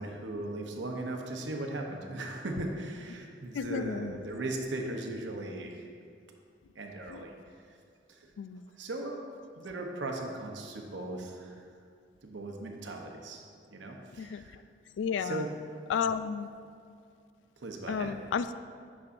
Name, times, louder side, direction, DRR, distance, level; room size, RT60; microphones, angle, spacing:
voice 1, 0.0-5.9 6.7-7.3 7.7-7.8 8.1-8.3 8.8-9.2 9.6-11.6 12.2-13.4 13.7-14.6 15.2-15.5 17.6-18.1, right 2 dB, 75° right, 2 dB, 0.8 m, -38 dB
voice 2, 3.5-4.2 7.1-7.2 8.4-8.6 14.2-14.4 15.0-15.5 15.9-16.5 17.9-18.5, left 6 dB, 80° left, 13 dB, 0.3 m, -32 dB
9.6 x 6.1 x 2.6 m, 2.3 s
head